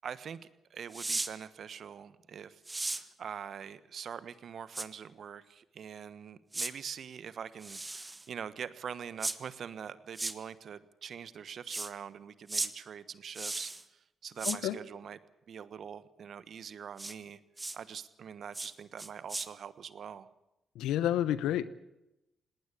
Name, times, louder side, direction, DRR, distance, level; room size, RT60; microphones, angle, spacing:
voice 1, 0.0-0.4 0.7-15.2 15.5-17.4 17.7-20.3, right 7 dB, 65° right, 16 dB, 1.3 m, -44 dB
sound 1, 0.9-1.3 2.7-3.0 4.7-4.9 6.5-6.7 7.6-8.3 9.2-9.4 10.1-10.3 11.7-11.9 12.5-12.7 13.3-13.8 14.4-14.6 17.0-17.1 17.6-17.8 18.5-18.7 19.0-19.5, right 2 dB, 25° right, 1.6 m, -35 dB
voice 2, 14.4-14.8 20.7-21.7, left 11 dB, 85° left, 17 dB, 1.0 m, -30 dB
19.0 x 19.0 x 8.6 m, 0.88 s
supercardioid pair, 55°, 0 cm